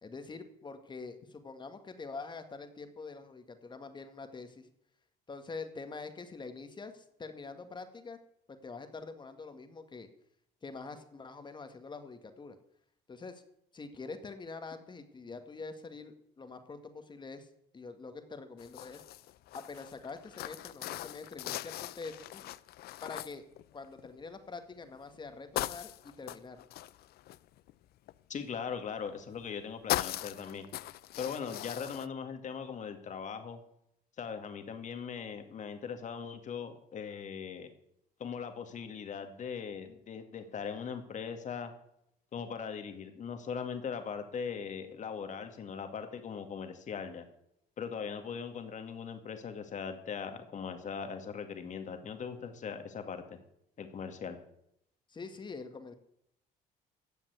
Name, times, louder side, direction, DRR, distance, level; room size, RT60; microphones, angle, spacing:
voice 1, 0.0-4.7 5.3-8.2 8.5-10.1 10.6-12.6 13.1-13.4 13.7-17.5 17.7-19.0 19.5-22.5 23.0-23.4 23.7-26.6 55.1-55.9, left 4 dB, 25° left, 8 dB, 1.9 m, -45 dB
sound 1, 18.6-24.2 24.7-25.2 25.5-28.1 29.2-29.6 29.9-32.1, left 15 dB, 70° left, 0.5 m, -39 dB
voice 2, 28.3-30.7 31.2-33.6 34.2-37.7 38.2-41.7 42.3-47.3 47.8-53.4 53.8-54.4, left 6 dB, 45° left, 7 dB, 2.2 m, -40 dB
15.5 x 5.9 x 9.5 m, 0.75 s
cardioid pair, 110°, 17 cm